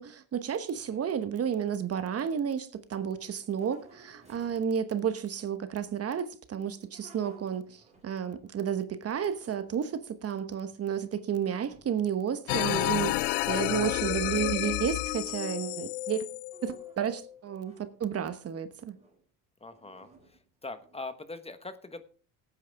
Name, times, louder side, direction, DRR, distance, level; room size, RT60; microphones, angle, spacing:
voice 1, 0.0-16.3 16.6-18.9, right 8 dB, 35° right, 1.1 m, -32 dB
sound 1, 2.8-4.8 6.7-8.8 9.2-10.2 10.7-11.3 11.7-12.0 12.3-13.5 14.0-14.2 16.3-18.3 18.9-19.2 19.7-21.3, right 3 dB, 15° right, 4.5 m, -59 dB
sound 2, 12.5-17.4, left 19 dB, 70° left, 0.6 m, -31 dB
voice 2, 19.6-22.0, left 3 dB, 15° left, 1.2 m, -42 dB
17.0 x 9.1 x 3.5 m
supercardioid pair, 105°, 43 cm